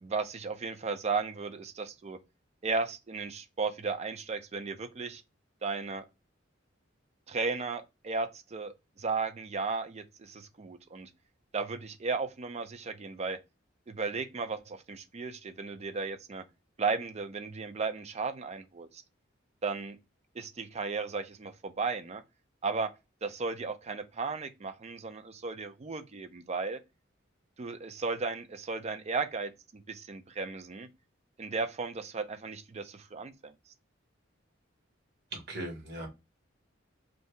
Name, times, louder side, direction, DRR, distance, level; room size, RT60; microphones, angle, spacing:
voice 1, 0.0-2.2 2.6-5.2 5.6-6.0 7.3-11.1 11.5-13.4 13.9-16.4 16.8-19.0 19.6-20.0 20.4-22.2 22.6-22.9 23.2-26.8 27.6-29.5 29.9-30.9 31.4-33.5, right 4 dB, 35° right, 0.5 m, -35 dB
voice 2, 35.3-36.1, right 1 dB, 60° right, 1.3 m, -38 dB
2.7 x 2.6 x 3.3 m
head